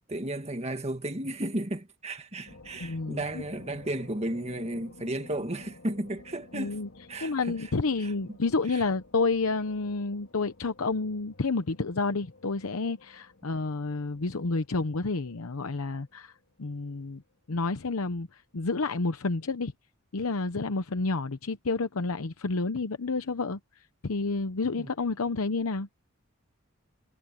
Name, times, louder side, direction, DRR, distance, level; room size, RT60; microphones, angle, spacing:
voice 1, 0.1-6.8 7.1-7.7 8.0-8.1 8.7-8.8 24.7-24.9, right 1 dB, 30° right, 1.9 m, -34 dB
sound 1, 2.5-16.9, left 2 dB, 70° left, 2.2 m, -53 dB
voice 2, 2.8-3.4 6.5-6.9 7.2-16.3 16.6-17.2 17.5-19.7 20.1-23.6 24.0-25.9, left 3 dB, 90° left, 0.9 m, -30 dB
head